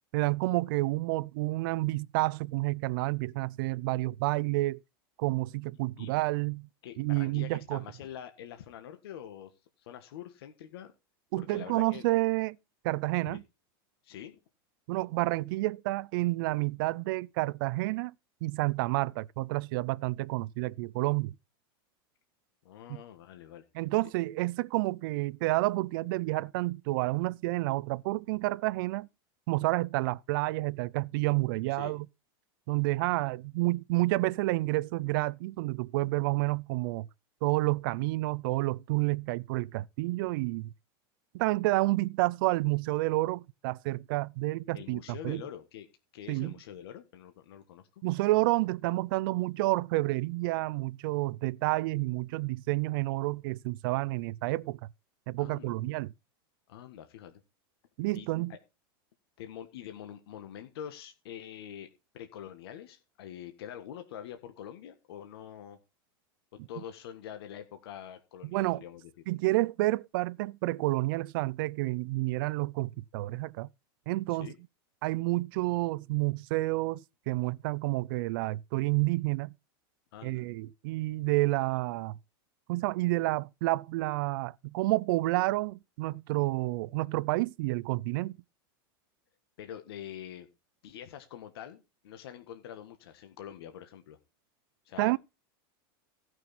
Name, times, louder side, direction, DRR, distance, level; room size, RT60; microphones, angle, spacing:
voice 1, 0.1-4.8 5.2-6.7 7.0-7.8 11.3-12.6 12.8-13.4 14.9-18.1 18.4-21.3 23.7-29.1 29.5-32.1 32.7-37.1 37.4-40.7 41.3-45.4 46.3-46.5 48.0-54.8 55.3-56.1 58.0-58.5 68.4-68.8 69.3-73.7 74.1-74.5 75.0-79.5 80.2-82.2 82.7-88.4 95.0-95.2, right 20 dB, 60° right, 0.5 m, -29 dB
voice 2, 6.8-9.5 9.8-10.9 11.4-12.1 13.3-13.4 14.0-14.4 22.6-23.6 31.7-31.9 33.1-33.2 44.7-45.9 46.1-48.0 55.4-55.8 56.7-57.4 58.1-58.6 59.4-61.9 62.1-65.8 66.5-69.1 74.3-74.5 80.1-80.4 89.6-90.5 90.8-94.2 94.8-95.2, left 10 dB, 80° left, 1.6 m, -45 dB
15.5 x 6.3 x 4.2 m
supercardioid pair, 150°, 13 cm